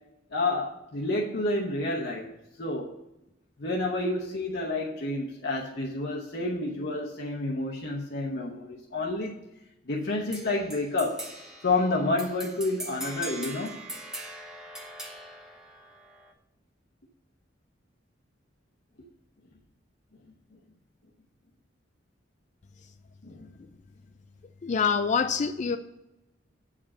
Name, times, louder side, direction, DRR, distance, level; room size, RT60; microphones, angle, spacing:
voice 1, 0.3-2.3 2.6-3.0 3.6-9.4 9.9-11.3 11.6-13.8 23.2-23.5, left 2 dB, 60° left, -3 dB, 0.9 m, -29 dB
sound 1, 10.3-16.3, right 1 dB, 5° right, 1.0 m, -41 dB
voice 2, 24.6-25.8, left 6 dB, 40° left, 9 dB, 0.3 m, -25 dB
7.8 x 5.0 x 7.4 m, 0.95 s
head